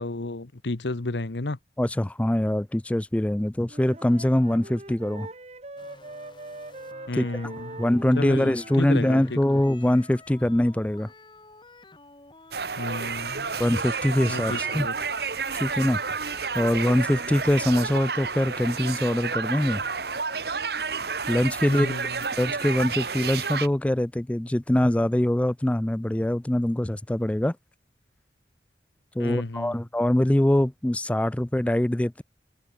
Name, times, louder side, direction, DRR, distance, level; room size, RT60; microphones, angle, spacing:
voice 1, 0.0-1.6 7.1-7.9 8.2-9.6 12.8-13.5 14.2-14.9 21.7-22.2 29.2-29.8, left 2 dB, 85° left, 1.1 m, -32 dB
voice 2, 1.8-5.3 7.1-7.3 7.8-11.1 13.6-14.9 15.6-16.0 16.5-19.8 21.3-21.9 22.4-27.6 29.2-32.2, left 1 dB, 5° left, 0.3 m, -23 dB
Wind instrument woodwind instrument, 3.6-9.3, right 2 dB, 35° right, 1.5 m, -42 dB
sound 1, 5.8-20.4, left 2 dB, 25° left, 3.7 m, -50 dB
sound 2, 12.5-23.7, right 5 dB, 65° right, 1.6 m, -30 dB
head